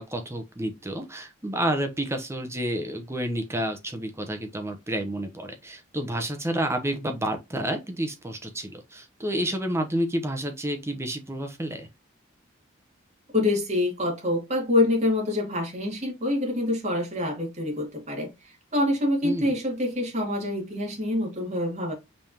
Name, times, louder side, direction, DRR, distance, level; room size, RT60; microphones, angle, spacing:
voice 1, 0.0-11.9 19.2-19.5, right 1 dB, 15° right, 0.8 m, -30 dB
voice 2, 13.3-21.9, left 2 dB, 35° right, 2.2 m, -26 dB
5.3 x 3.4 x 2.8 m
head